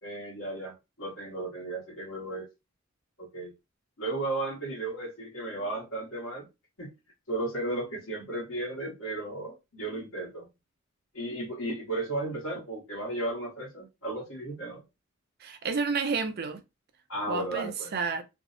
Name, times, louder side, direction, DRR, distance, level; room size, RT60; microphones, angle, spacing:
voice 1, 0.0-2.5 3.2-3.5 4.0-6.4 6.8-6.9 7.3-10.5 11.1-14.8 17.1-17.9, right 2 dB, 75° left, 1.1 m, -34 dB
voice 2, 15.4-16.6 17.3-18.2, right 5 dB, 50° right, 0.5 m, -30 dB
2.5 x 2.0 x 2.4 m
head